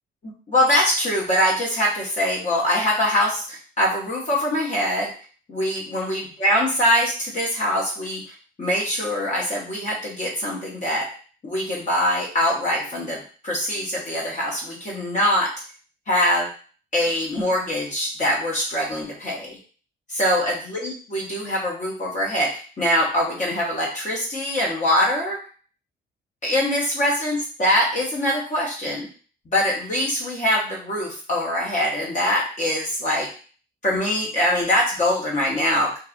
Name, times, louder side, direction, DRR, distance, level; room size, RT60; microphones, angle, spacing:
voice 1, 0.2-5.1 5.5-8.2 8.6-11.1 11.4-15.5 16.1-16.5 16.9-19.6 20.2-25.4 26.4-29.1 29.5-33.3 33.8-36.0, left 1 dB, 40° left, -3 dB, 0.7 m, -23 dB
2.6 x 2.3 x 2.4 m, 0.41 s
cardioid pair, 90°, 20 cm